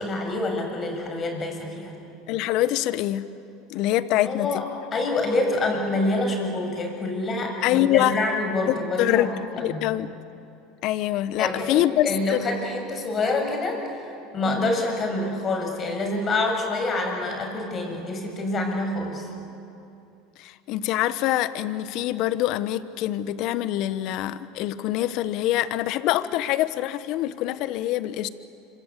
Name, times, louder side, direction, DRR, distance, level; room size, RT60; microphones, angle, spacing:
voice 1, 0.0-2.0 4.2-9.8 11.4-19.3, left 2 dB, 35° left, 3 dB, 6.9 m, -27 dB
voice 2, 2.3-3.3 3.7-4.6 7.6-8.1 8.7-9.3 9.6-10.1 10.8-12.4 14.5-14.7 20.4-28.3, left 14 dB, 60° left, 15 dB, 1.2 m, -25 dB
26.0 x 25.0 x 8.3 m, 2.7 s
hypercardioid pair, 95°, 0 cm